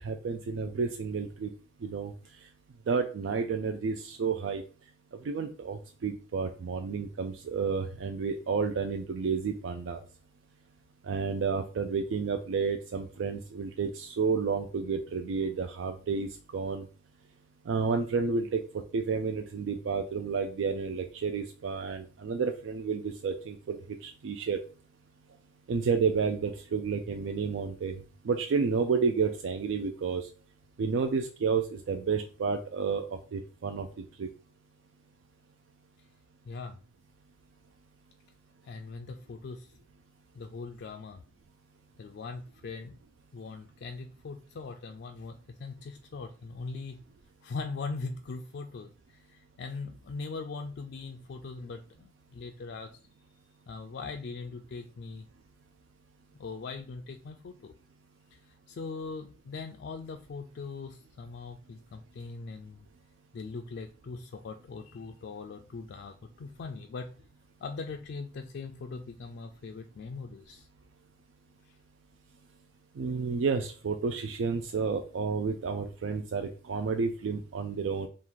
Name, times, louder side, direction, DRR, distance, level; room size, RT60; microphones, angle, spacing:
voice 1, 0.0-1.5 1.8-2.1 2.9-4.6 5.2-10.0 11.0-16.9 17.7-18.6 18.9-24.6 25.7-30.3 30.8-33.9 34.2-34.3 73.0-78.1, right 5 dB, 85° right, 5 dB, 0.4 m, -31 dB
voice 2, 36.5-36.8 38.6-39.7 40.3-41.2 42.0-43.0 43.3-47.0 47.4-53.0 53.7-55.3 56.4-57.7 58.3-58.4 58.7-62.9 63.3-67.1 67.6-70.7, left 4 dB, 60° left, 5 dB, 0.3 m, -41 dB
3.6 x 2.4 x 4.5 m, 0.38 s
head